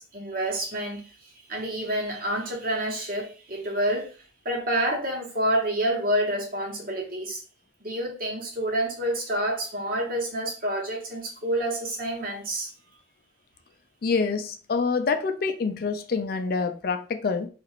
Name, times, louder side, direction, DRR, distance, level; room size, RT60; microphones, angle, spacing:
voice 1, 0.0-4.2 4.4-7.4 7.8-12.7, right 1 dB, 45° right, 1.0 m, -28 dB
voice 2, 14.0-17.5, left 4 dB, 50° left, 0.4 m, -26 dB
2.9 x 2.5 x 2.9 m
head